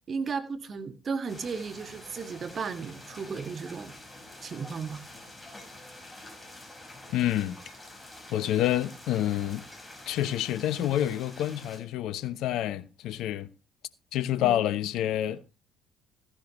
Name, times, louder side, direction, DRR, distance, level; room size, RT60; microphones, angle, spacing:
voice 1, 0.1-3.9 4.4-5.0 14.4-14.6, right 5 dB, 45° right, 1.8 m, -35 dB
sound 1, 1.3-11.8, left 1 dB, 15° left, 5.2 m, -47 dB
voice 2, 7.1-7.6 8.3-9.6 10.1-13.5 14.1-15.6, left 12 dB, 70° left, 0.9 m, -28 dB
15.0 x 10.0 x 3.1 m
hypercardioid pair, 60°, 0 cm